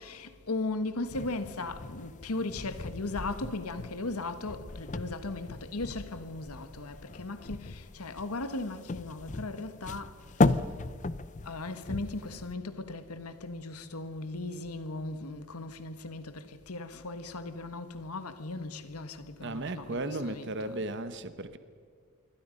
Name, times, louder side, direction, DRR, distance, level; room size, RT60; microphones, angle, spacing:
voice 1, 0.0-10.6 11.4-20.8, left 2 dB, 90° left, 1.6 m, -37 dB
sound 1, 1.1-12.5, left 3 dB, 35° left, 0.6 m, -35 dB
voice 2, 19.4-21.6, right 2 dB, 55° right, 1.1 m, -35 dB
27.0 x 23.5 x 5.4 m
head